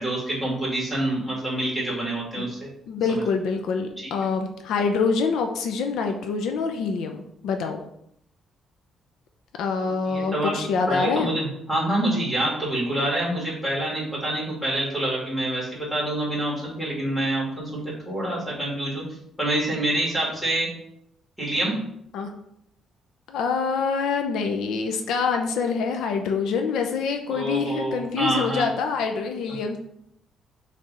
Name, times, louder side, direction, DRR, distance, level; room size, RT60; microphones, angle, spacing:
voice 1, 0.0-2.6 3.1-3.2 10.1-10.6 10.9-19.0 19.4-20.7 21.4-21.8 27.3-28.6, right 1 dB, 5° left, -5 dB, 2.8 m, -26 dB
voice 2, 2.9-7.8 9.6-11.3 22.1-22.3 23.3-29.8, left 5 dB, 80° left, 5 dB, 0.7 m, -25 dB
6.7 x 3.5 x 5.0 m, 0.73 s
cardioid pair, 170°, 0 cm